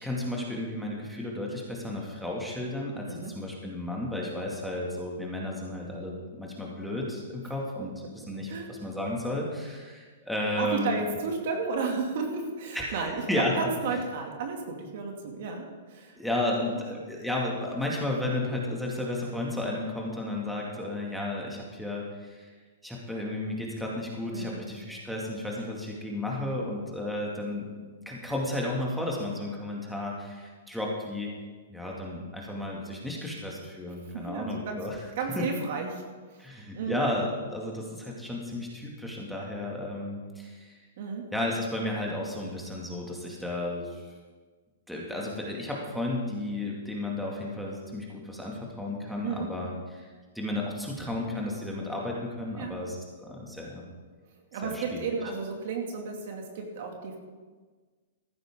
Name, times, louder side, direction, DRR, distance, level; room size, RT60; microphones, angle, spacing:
voice 1, 0.0-10.9 12.7-13.7 16.2-22.5 22.8-27.7 28.1-31.4 31.7-35.0 35.4-35.5 36.4-40.8 41.3-44.1 44.9-50.1 50.3-53.8 54.6-55.0, left 1 dB, ahead, -3 dB, 2.2 m, -33 dB
voice 2, 10.6-16.2 16.5-16.7 24.3-24.6 34.1-34.8 35.2-36.0 36.3-36.4 36.7-37.0 41.0-41.3 49.2-49.5 52.6-52.7 54.5-57.2, right 4 dB, 60° right, 2 dB, 2.4 m, -33 dB
14.5 x 11.5 x 3.8 m, 1.4 s
hypercardioid pair, 140°, 0 cm